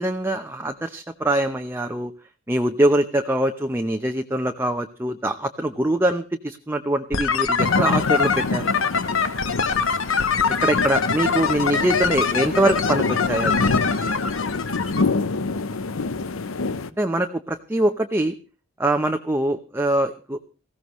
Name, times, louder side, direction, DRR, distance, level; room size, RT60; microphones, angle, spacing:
voice 1, 0.0-2.1 2.5-8.7 10.6-13.6 17.0-18.3 18.8-20.4, right 1 dB, 10° right, 5 dB, 0.7 m, -23 dB
sound 1, 7.1-15.0, left 5 dB, 70° left, 1.3 m, -24 dB
sound 2, 7.6-16.9, left 3 dB, 90° left, 0.8 m, -26 dB
19.5 x 15.5 x 3.1 m, 0.33 s
head